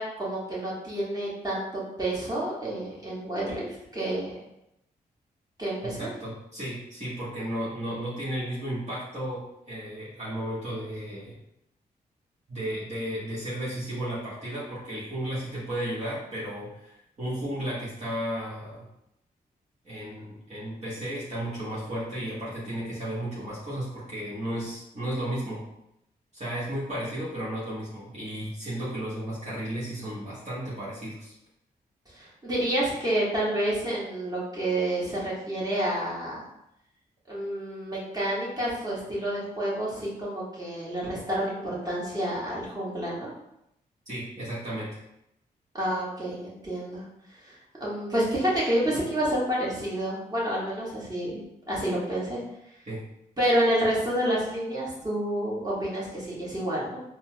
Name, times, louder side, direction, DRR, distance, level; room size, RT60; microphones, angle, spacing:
voice 1, 0.0-4.4 5.6-6.1 32.1-36.4 37.3-43.3 45.7-47.0 47.4-51.4 51.7-52.4 53.4-57.0, right 1 dB, 20° right, -7 dB, 1.5 m, -29 dB
voice 2, 5.8-11.4 12.5-18.9 19.8-25.6 26.3-31.3 44.1-45.0 52.9-53.0, right 1 dB, 40° right, -9 dB, 1.3 m, -34 dB
4.3 x 2.2 x 2.2 m, 0.82 s
supercardioid pair, 50°, 17 cm